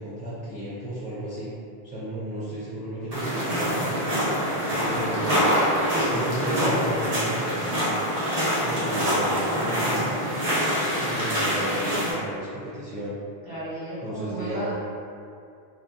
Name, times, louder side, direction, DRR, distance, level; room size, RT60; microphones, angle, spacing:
voice 1, 0.0-1.5 1.8-3.9 4.8-5.7 6.0-7.9 8.5-10.1 11.0-13.1 14.0-14.7, equal, 10° right, -12 dB, 0.4 m, -33 dB
sound 1, 3.1-12.1, equal, 40° right, 0.8 m, -25 dB
voice 2, 13.4-14.7, right 1 dB, 20° left, -12 dB, 0.9 m, -34 dB
2.8 x 2.5 x 2.4 m, 2.4 s
omnidirectional pair, 1.0 m